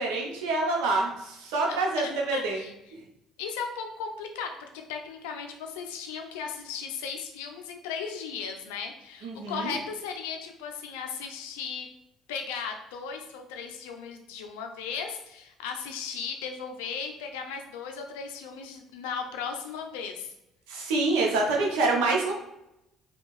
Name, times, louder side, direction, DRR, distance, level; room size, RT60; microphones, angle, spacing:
voice 1, 0.0-2.6 9.2-9.7 20.7-22.3, right 3 dB, 85° right, 0 dB, 0.7 m, -26 dB
voice 2, 1.7-2.7 3.4-11.9 12.3-20.3, left 6 dB, 90° left, 4 dB, 0.4 m, -36 dB
2.6 x 2.3 x 2.9 m, 0.86 s
supercardioid pair, 70°, 0 cm